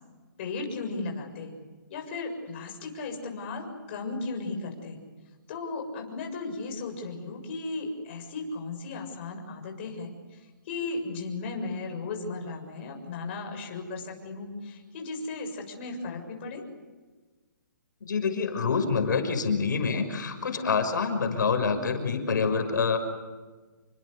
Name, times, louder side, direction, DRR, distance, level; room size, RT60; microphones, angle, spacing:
voice 1, 0.4-1.5 1.9-5.0 5.5-16.6, left 3 dB, 35° left, 3 dB, 7.1 m, -36 dB
voice 2, 18.0-23.0, left 5 dB, 65° left, 7 dB, 6.1 m, -26 dB
29.0 x 25.0 x 6.8 m, 1.3 s
hypercardioid pair, 165°, 11 cm